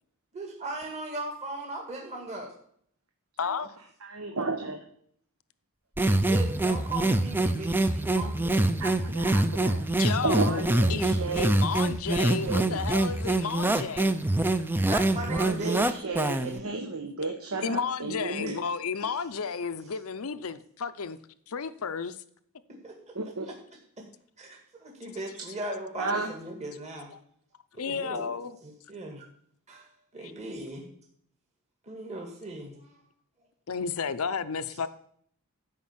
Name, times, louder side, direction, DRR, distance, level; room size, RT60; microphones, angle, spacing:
voice 1, 0.3-2.5 6.2-8.9 13.1-13.2 14.9-15.8 22.7-23.2 24.0-24.1 24.4-27.1 27.7-28.3 28.6-29.3 29.7-29.9 30.1-30.8 31.8-33.0, right 2 dB, 30° right, 0 dB, 2.1 m, -38 dB
voice 2, 3.4-3.8 9.9-10.6 10.9-11.1 11.4-14.1 17.6-21.2 21.5-22.2 27.1-27.2 27.8-28.6 30.2-30.3 33.7-34.9, left 6 dB, 70° left, 12 dB, 0.7 m, -32 dB
voice 3, 4.0-4.8 8.8-9.8 10.2-11.6 12.2-12.9 15.1-18.6 23.1-23.5 26.0-26.3, right 3 dB, 70° right, 4 dB, 1.1 m, -33 dB
sound 1, 6.0-16.6, right 2 dB, 10° right, 0.5 m, -25 dB
13.0 x 5.2 x 7.4 m, 0.63 s
head